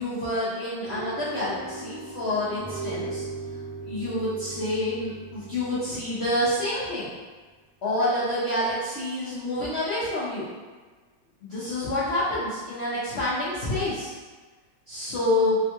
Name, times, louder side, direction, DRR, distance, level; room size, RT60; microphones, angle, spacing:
voice 1, 0.0-3.2 3.8-7.1 7.8-10.5 11.4-14.1 14.9-15.6, left 1 dB, 75° left, -12 dB, 0.6 m, -28 dB
sound 1, 0.8-7.1, right 3 dB, 25° right, 0.7 m, -38 dB
3.6 x 2.2 x 2.8 m, 1.3 s
omnidirectional pair, 2.1 m